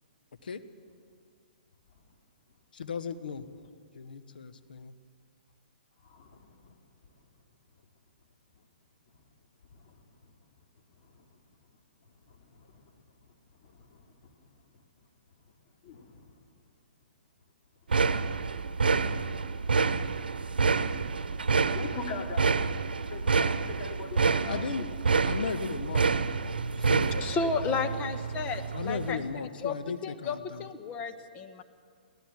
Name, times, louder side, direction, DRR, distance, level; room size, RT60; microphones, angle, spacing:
voice 1, 2.7-3.4 3.9-4.9 24.4-24.9 25.2-26.1 26.7-27.2 28.7-30.7, left 5 dB, 70° left, 1.3 m, -36 dB
voice 2, 6.0-6.8 9.7-10.0 11.0-11.3 12.2-12.9 13.6-14.5 14.7-14.8 15.8-16.4 19.6-19.8 21.7-22.6 23.1-24.9 27.1-27.8, left 4 dB, 45° left, 2.9 m, -42 dB
sound 1, 17.9-29.2, right 4 dB, 80° right, 0.9 m, -28 dB
voice 3, 27.2-29.8 30.0-31.6, left 4 dB, 25° left, 1.4 m, -33 dB
23.0 x 16.5 x 7.7 m
hypercardioid pair, 125°, 5 cm